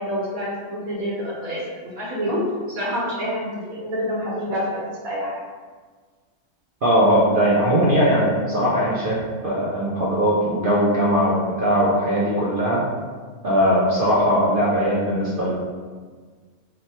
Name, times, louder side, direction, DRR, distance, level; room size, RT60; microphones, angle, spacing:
voice 1, 0.0-2.4 2.7-5.4, equal, 80° right, -6 dB, 1.3 m, -27 dB
voice 2, 6.8-12.9 13.4-15.5, equal, 55° right, -5 dB, 0.6 m, -20 dB
3.0 x 2.2 x 4.1 m, 1.5 s
omnidirectional pair, 1.4 m